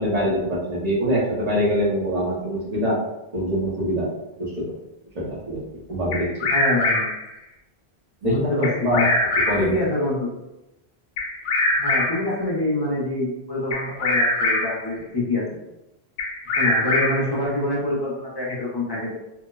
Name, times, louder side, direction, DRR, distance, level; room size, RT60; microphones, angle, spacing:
voice 1, 0.0-3.0 3.3-4.1 4.4-4.7 5.1-5.6 5.9-6.3 8.2-9.8, equal, 40° right, -6 dB, 0.8 m, -24 dB
Bird vocalization bird call bird song, 6.1-7.3 8.6-9.7 11.2-12.3 13.7-14.8 16.2-17.3, left 2 dB, 75° left, 0.8 m, -23 dB
voice 2, 6.5-7.1 8.2-9.1 9.6-10.3 11.8-15.4 16.6-19.1, left 2 dB, 30° left, -6 dB, 0.6 m, -26 dB
2.8 x 2.0 x 2.2 m, 0.94 s
omnidirectional pair, 1.1 m